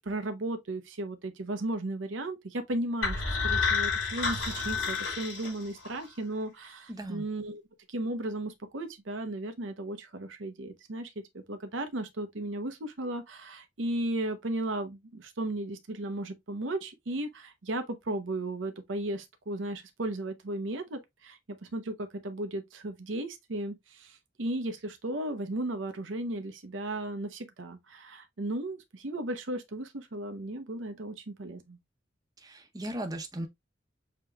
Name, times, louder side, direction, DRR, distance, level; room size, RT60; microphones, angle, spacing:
voice 1, 0.0-7.6 7.9-31.8, right 1 dB, 90° right, 0.8 m, -35 dB
sound 1, 3.0-6.0, left 5 dB, 75° left, 2.8 m, -30 dB
voice 2, 6.9-7.2 32.4-33.5, right 1 dB, 20° right, 0.8 m, -37 dB
6.7 x 2.9 x 2.3 m
head